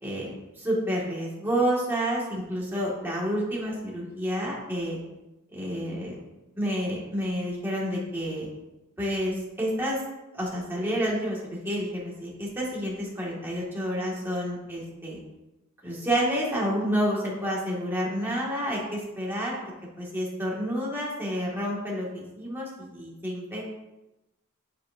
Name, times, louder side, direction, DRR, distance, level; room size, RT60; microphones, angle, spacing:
voice 1, 0.0-5.0 5.5-6.2 6.6-8.5 9.0-10.0 10.3-11.4 11.6-15.2 15.8-23.7, equal, 10° right, -5 dB, 2.2 m, -29 dB
8.5 x 7.7 x 2.8 m, 0.97 s
head